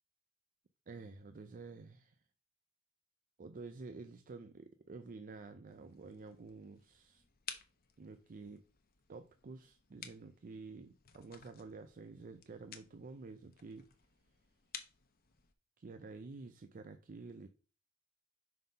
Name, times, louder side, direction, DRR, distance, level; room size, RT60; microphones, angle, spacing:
voice 1, 0.9-2.2 3.4-7.2 8.0-8.6 9.1-13.9 15.8-17.5, right 3 dB, 40° right, 9 dB, 0.4 m, -50 dB
sound 1, 5.7-15.5, left 8 dB, 45° left, 0.8 m, -55 dB
5.6 x 3.8 x 5.3 m, 0.37 s
head